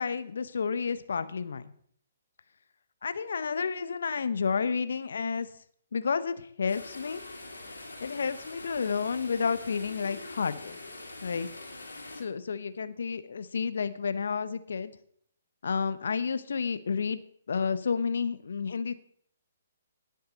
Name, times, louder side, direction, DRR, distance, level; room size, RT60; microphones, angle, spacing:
voice 1, 0.0-1.7 3.0-5.5 5.9-7.2 8.0-10.8 11.2-11.5 12.2-15.0 15.6-17.2 17.5-18.9, left 5 dB, 65° left, 13 dB, 0.9 m, -31 dB
sound 1, 6.7-12.2, left 2 dB, 85° left, 3.2 m, -44 dB
19.0 x 6.6 x 4.0 m, 0.63 s
figure-of-eight pair, 130°, 0 cm